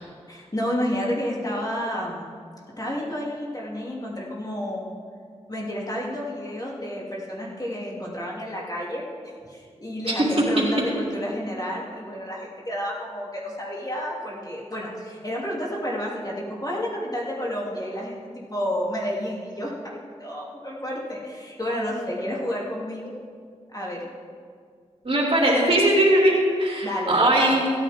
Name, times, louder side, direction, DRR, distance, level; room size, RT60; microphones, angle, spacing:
voice 1, 0.3-2.3 2.8-4.9 5.5-9.0 9.5-23.1 23.7-24.0 26.8-27.4, equal, 30° left, -4 dB, 2.8 m, -30 dB
voice 2, 25.0-27.6, right 1 dB, 50° right, -3 dB, 3.0 m, -19 dB
16.5 x 9.4 x 3.7 m, 2.1 s
cardioid pair, 45°, 12 cm